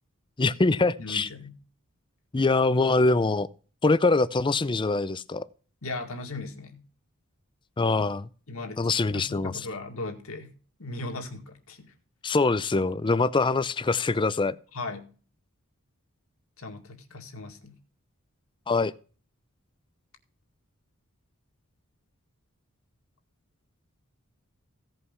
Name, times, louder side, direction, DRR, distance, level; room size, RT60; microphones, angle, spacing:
voice 1, 0.4-1.3 2.3-3.5 3.8-5.5 7.8-8.3 8.8-9.5 12.2-14.6 18.7-18.9, left 3 dB, 20° left, 0.5 m, -24 dB
voice 2, 1.0-1.6 5.8-6.8 8.5-8.8 9.1-10.5 10.8-11.9 14.7-15.1 16.6-17.8, left 2 dB, 65° left, 2.0 m, -37 dB
16.0 x 5.6 x 5.6 m
head